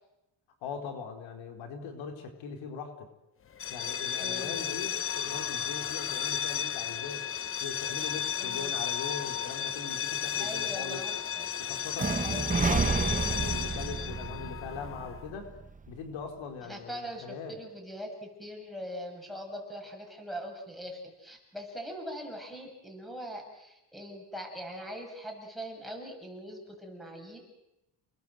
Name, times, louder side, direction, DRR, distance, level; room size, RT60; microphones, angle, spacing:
voice 1, 0.6-3.1 3.7-7.2 7.6-11.0 11.6-15.5 15.9-17.6, left 6 dB, 75° left, 4 dB, 4.1 m, -41 dB
sound 1, 3.5-15.2, left 8 dB, 30° left, 0.9 m, -34 dB
voice 2, 4.2-4.6 8.4-8.8 10.4-11.5 12.2-12.7 16.6-27.4, equal, ahead, 2 dB, 7.7 m, -42 dB
sound 2, 12.0-15.9, right 4 dB, 15° right, 1.0 m, -31 dB
30.0 x 21.0 x 7.9 m, 0.92 s
cardioid pair, 120°, 46 cm